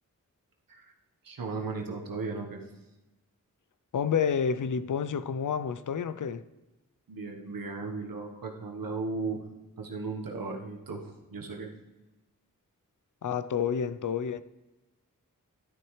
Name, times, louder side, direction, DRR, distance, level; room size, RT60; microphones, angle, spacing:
voice 1, 1.2-2.7 7.1-9.4 9.8-11.7, right 4 dB, 90° right, 1.3 m, -36 dB
voice 2, 3.9-6.4 13.2-14.4, left 7 dB, 65° left, 0.5 m, -29 dB
11.5 x 10.5 x 3.2 m
cardioid pair, 50°, 33 cm